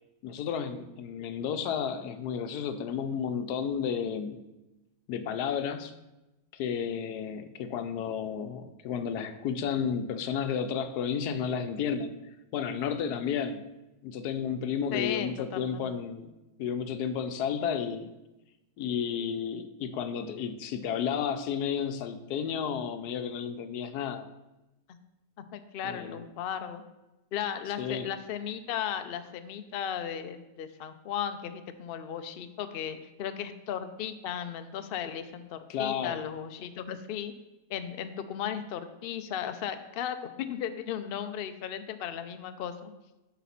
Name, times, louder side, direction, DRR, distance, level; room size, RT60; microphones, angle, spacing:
voice 1, 0.2-4.4 5.1-5.9 6.5-12.1 12.5-13.7 14.0-16.3 16.6-18.1 18.8-24.3 25.8-26.2 27.8-28.1 35.7-36.2, left 7 dB, 90° left, 10 dB, 1.2 m, -32 dB
voice 2, 14.9-15.9 24.9-25.0 25.5-26.8 27.3-37.3 37.7-42.9, left 9 dB, 70° left, 10 dB, 0.5 m, -36 dB
8.1 x 4.2 x 5.7 m, 1.0 s
omnidirectional pair, 1.7 m